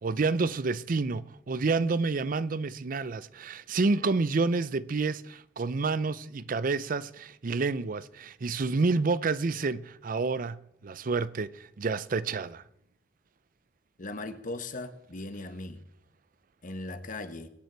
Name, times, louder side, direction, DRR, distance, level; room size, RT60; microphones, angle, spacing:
voice 1, 0.0-12.6, right 3 dB, 50° right, 0.5 m, -29 dB
voice 2, 14.0-15.8 16.6-17.5, left 2 dB, 45° left, 1.2 m, -38 dB
23.0 x 9.3 x 4.6 m
head